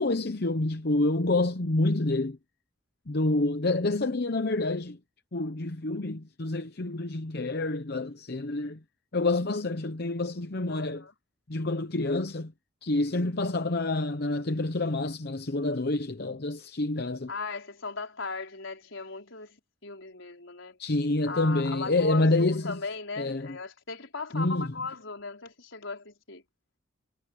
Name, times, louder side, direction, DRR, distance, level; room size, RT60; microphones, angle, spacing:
voice 1, 0.0-2.4 3.1-5.0 5.3-8.8 9.1-11.0 11.5-12.5 12.8-17.3 20.8-22.8 23.2-23.6 24.3-24.7, left 2 dB, 55° left, 0.9 m, -28 dB
voice 2, 10.7-11.1 17.3-20.8 21.3-26.4, left 4 dB, 75° left, 4.8 m, -38 dB
head